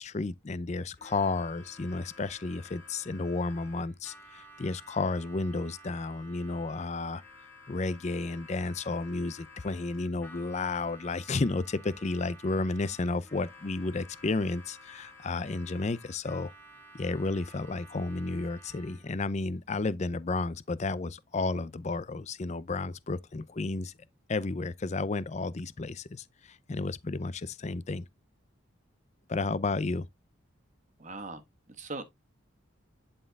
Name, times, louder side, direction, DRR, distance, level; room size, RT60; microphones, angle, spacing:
voice 1, 0.0-7.2 7.7-16.5 16.9-23.9 24.3-28.1 29.3-30.1, left 3 dB, 35° left, 0.4 m, -32 dB
Harmonica, 0.9-19.2, left 1 dB, 10° left, 1.9 m, -53 dB
voice 2, 31.0-31.4 31.7-32.0, right 3 dB, 35° right, 1.3 m, -39 dB
11.0 x 4.4 x 2.3 m
head